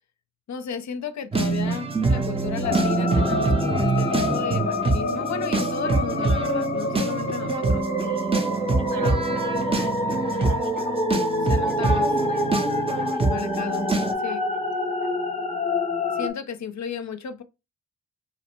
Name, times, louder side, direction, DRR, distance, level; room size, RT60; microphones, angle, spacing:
voice 1, 0.5-7.9 11.4-12.2 13.3-13.9 14.2-14.4 16.1-17.4, left 7 dB, 55° left, 0.5 m, -34 dB
voice 2, 1.2-1.7 5.4-5.7 8.0-8.5 8.8-12.0 12.3-12.5 13.1-13.3 14.1-14.7 15.0-15.2, right 4 dB, 65° right, 0.7 m, -42 dB
sound 1, 1.3-14.1, right 3 dB, 15° right, 0.4 m, -25 dB
sound 2, 2.6-16.3, left 2 dB, 20° left, 0.7 m, -27 dB
2.6 x 2.1 x 2.9 m
cardioid pair, 45°, 35 cm